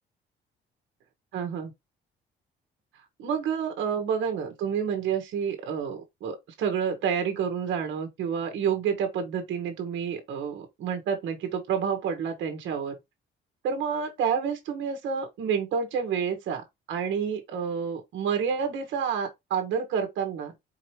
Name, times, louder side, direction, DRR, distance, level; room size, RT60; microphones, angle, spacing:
voice 1, 1.3-1.7 3.2-13.0 13.6-20.5, right 7 dB, 80° right, 1.3 m, -29 dB
4.5 x 3.0 x 3.1 m
cardioid pair, 115°, 20 cm